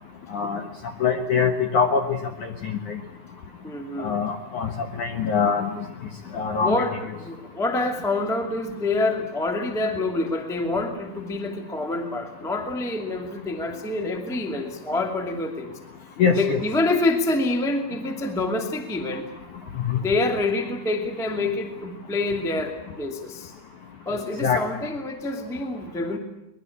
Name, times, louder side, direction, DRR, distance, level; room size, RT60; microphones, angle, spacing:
voice 1, 0.3-0.6 1.0-2.0 2.6-3.0 4.0-4.7 5.0-5.7 6.3-6.8 16.2-16.6 19.8-20.0 24.4-24.6, left 6 dB, 65° left, 5 dB, 2.0 m, -23 dB
voice 2, 3.6-4.2 6.6-15.7 16.3-19.3 20.0-23.5 24.0-26.2, left 2 dB, 5° left, 4 dB, 0.6 m, -27 dB
23.5 x 21.0 x 8.6 m, 0.89 s
omnidirectional pair, 5.4 m